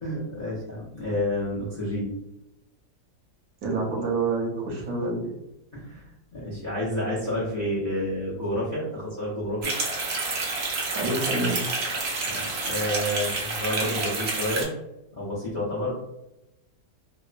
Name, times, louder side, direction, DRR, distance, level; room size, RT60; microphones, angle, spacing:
voice 1, 0.0-2.1 5.7-9.7 12.2-14.7 15.1-16.0, left 1 dB, 50° left, -7 dB, 0.5 m, -30 dB
voice 2, 3.6-5.2 10.9-11.7, right 3 dB, 65° right, -1 dB, 1.0 m, -27 dB
sound 1, 9.6-14.6, right 3 dB, 85° right, 0.5 m, -29 dB
3.0 x 2.0 x 2.4 m, 0.91 s
omnidirectional pair, 1.8 m